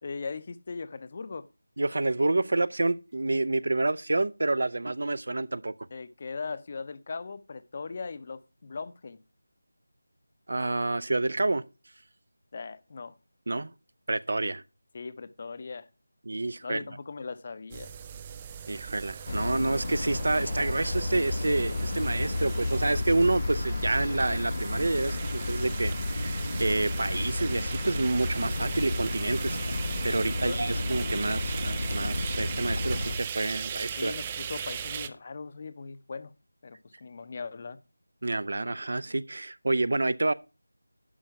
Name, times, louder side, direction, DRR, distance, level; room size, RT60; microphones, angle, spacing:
voice 1, 0.0-1.5 5.9-9.2 12.5-13.1 14.9-15.9 16.6-17.9 30.2-30.6 34.0-36.3 36.6-37.8, left 4 dB, 35° left, 0.7 m, -39 dB
voice 2, 1.8-5.7 10.5-11.6 13.5-13.7 14.1-14.6 16.3-16.9 18.7-29.6 30.0-34.1 38.2-40.3, right 2 dB, 60° right, 0.6 m, -28 dB
sound 1, 17.7-35.1, right 8 dB, 20° right, 0.5 m, -38 dB
sound 2, 19.3-33.2, left 2 dB, 55° left, 1.0 m, -32 dB
sound 3, 25.6-33.2, equal, 80° left, 1.2 m, -38 dB
11.0 x 5.5 x 4.9 m
figure-of-eight pair, 170°, 0 cm